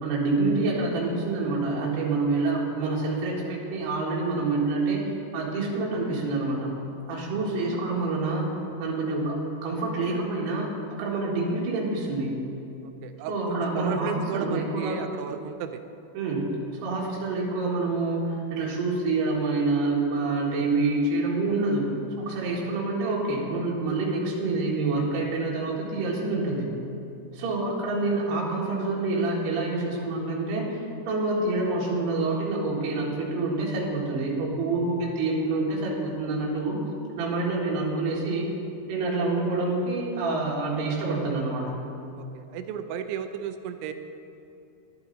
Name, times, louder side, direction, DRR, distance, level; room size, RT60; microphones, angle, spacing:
voice 1, 0.0-5.0 5.3-6.7 7.1-8.5 8.8-10.7 11.0-12.3 13.3-15.0 16.2-16.5 16.8-21.9 22.2-26.7 27.3-36.8 37.2-38.5 38.9-41.7, right 3 dB, 65° right, -3 dB, 3.7 m, -27 dB
voice 2, 13.0-15.8 28.0-28.1 42.2-43.9, right 8 dB, 85° right, 8 dB, 3.0 m, -35 dB
11.5 x 11.0 x 4.0 m, 2.8 s
omnidirectional pair, 5.2 m